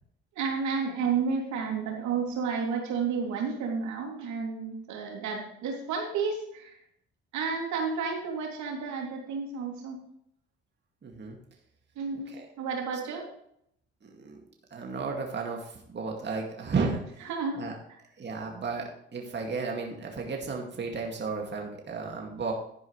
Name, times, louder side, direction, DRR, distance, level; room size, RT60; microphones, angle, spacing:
voice 1, 0.3-6.8 7.3-10.0 11.9-13.3 17.2-17.6 17.9-18.0, right 5 dB, 70° right, 0 dB, 3.0 m, -31 dB
voice 2, 11.0-11.4 14.0-14.4 14.7-17.0 17.6-17.8 18.2-22.5, right 4 dB, 35° right, 1 dB, 2.3 m, -33 dB
11.5 x 9.8 x 3.3 m, 0.71 s
supercardioid pair, 70°, 30 cm